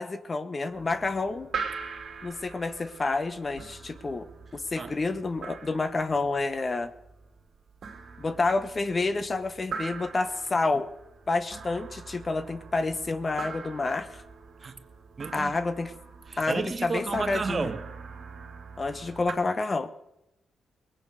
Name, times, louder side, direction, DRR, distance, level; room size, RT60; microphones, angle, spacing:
voice 1, 0.0-1.5 2.2-6.9 8.2-10.9 11.3-14.2 15.3-15.9 16.4-17.7 18.8-19.9, left 3 dB, 35° left, 13 dB, 1.0 m, -29 dB
sound 1, 0.7-19.3, right 5 dB, 60° right, 3.0 m, -42 dB
voice 2, 15.2-15.5 16.3-17.8, right 4 dB, 40° right, 8 dB, 1.5 m, -32 dB
19.5 x 8.9 x 6.6 m, 0.92 s
cardioid pair, 70°, 0 cm